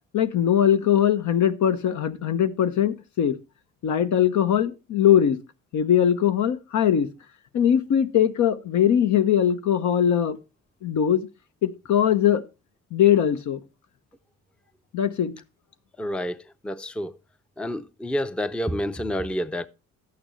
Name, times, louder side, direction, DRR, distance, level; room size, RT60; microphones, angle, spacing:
voice 1, 0.1-3.3 3.8-5.4 5.7-7.1 7.5-10.4 10.8-11.3 11.6-12.4 12.9-13.6 14.9-15.3, left 9 dB, 70° left, 1.0 m, -21 dB
voice 2, 16.0-17.1 17.6-19.7, equal, 5° left, 0.5 m, -29 dB
11.5 x 8.8 x 3.1 m
cardioid pair, 90°, 30 cm